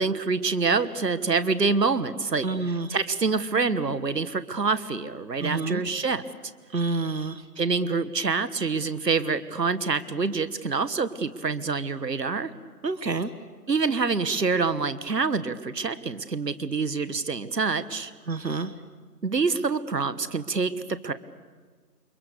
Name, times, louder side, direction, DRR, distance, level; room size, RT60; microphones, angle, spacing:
voice 1, 0.0-2.5 2.9-6.2 7.6-12.5 13.7-18.1 19.2-21.1, right 4 dB, 75° right, 13 dB, 1.6 m, -26 dB
voice 2, 2.4-3.0 5.4-5.8 6.7-7.5 12.8-13.3 18.3-18.7, right 3 dB, 90° right, 12 dB, 1.4 m, -28 dB
29.5 x 24.0 x 6.8 m, 1.5 s
figure-of-eight pair, 165°, 50 cm